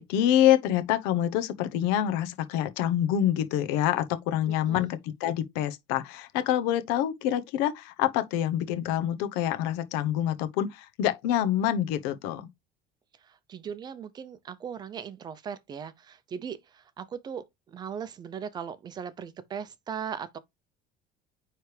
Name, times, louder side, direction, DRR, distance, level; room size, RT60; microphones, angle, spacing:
voice 1, 0.0-12.5, left 11 dB, 85° left, 0.9 m, -26 dB
voice 2, 4.5-5.0 13.2-20.4, right 7 dB, 25° right, 0.5 m, -39 dB
9.2 x 3.3 x 3.2 m
cardioid pair, 175°, 17 cm